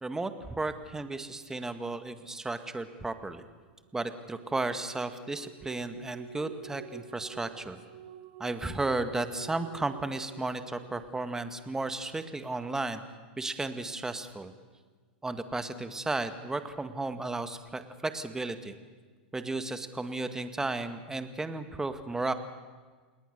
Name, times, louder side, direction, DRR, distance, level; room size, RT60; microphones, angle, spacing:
voice 1, 0.0-3.4 3.9-7.8 8.4-13.0 13.4-14.5 15.2-18.7 19.3-22.3, right 2 dB, 10° right, 9 dB, 1.8 m, -34 dB
sound 1, 4.0-11.8, right 7 dB, 60° right, 2.6 m, -49 dB
28.0 x 19.5 x 6.7 m, 1.4 s
hypercardioid pair, 105°, 5 cm